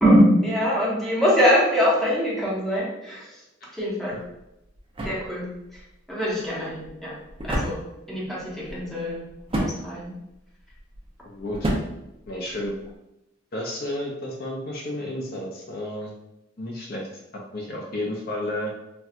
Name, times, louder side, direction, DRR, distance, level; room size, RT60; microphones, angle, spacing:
voice 1, 0.0-3.4 3.7-4.2 5.0-5.5 5.7-5.8 6.1-7.1 7.4-7.8 8.1-9.2 9.5-10.1, equal, ahead, -6 dB, 0.9 m, -23 dB
sound 1, 4.1-13.0, right 1 dB, 30° right, 0.6 m, -33 dB
voice 2, 11.2-11.7 12.3-12.7 13.5-16.1 16.6-17.1 17.5-18.7, left 1 dB, 50° left, -1 dB, 0.6 m, -31 dB
4.2 x 2.2 x 2.4 m, 0.88 s
head